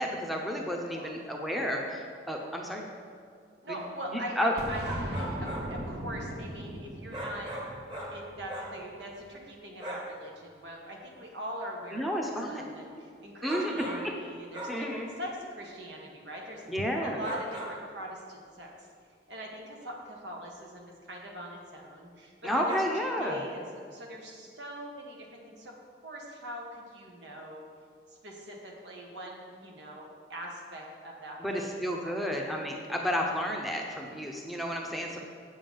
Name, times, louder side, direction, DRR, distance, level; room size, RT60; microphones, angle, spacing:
voice 1, 0.0-2.8 3.7-3.8 4.1-4.5 11.9-12.6 13.4-14.1 14.7-15.1 16.7-17.2 22.4-23.4 31.4-35.2, equal, ahead, -1 dB, 0.8 m, -31 dB
voice 2, 3.6-4.8 5.1-7.5 8.1-16.6 17.0-18.9 19.3-25.7 26.0-27.7 28.1-31.7 32.0-32.2, equal, 75° right, -1 dB, 1.7 m, -42 dB
Boom, 4.6-9.2, equal, 60° right, 0.8 m, -39 dB
sound 1, 4.8-5.8 7.1-8.8 9.8-10.2 13.4-14.2 14.5-15.0 17.2-17.9 22.7-22.8, right 1 dB, 25° right, 1.5 m, -39 dB
8.2 x 7.4 x 5.4 m, 2.2 s
head